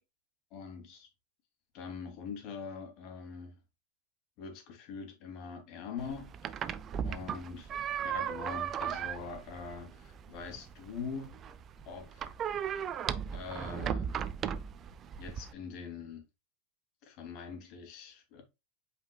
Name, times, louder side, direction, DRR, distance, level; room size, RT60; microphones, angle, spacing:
voice 1, 0.5-1.1 1.7-3.6 4.4-6.3 7.0-11.4 11.8-12.2 13.3-14.1 15.2-16.2 17.0-18.4, left 5 dB, 55° left, 2.6 m, -43 dB
sound 1, 6.0-15.5, right 8 dB, 35° right, 0.6 m, -37 dB
8.0 x 5.1 x 2.3 m
hypercardioid pair, 95°, 0 cm